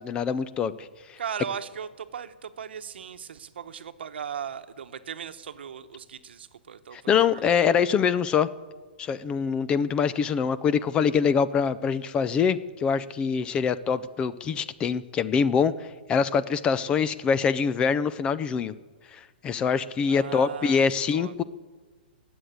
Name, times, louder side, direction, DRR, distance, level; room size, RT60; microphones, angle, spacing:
voice 1, 0.0-1.2 6.9-8.5 9.0-18.7 19.1-21.4, left 6 dB, 15° left, 15 dB, 0.4 m, -24 dB
voice 2, 1.2-7.4 20.0-20.8 21.1-21.3, right 8 dB, 80° right, 10 dB, 1.0 m, -38 dB
20.0 x 8.0 x 8.1 m, 1.4 s
hypercardioid pair, 150°, 6 cm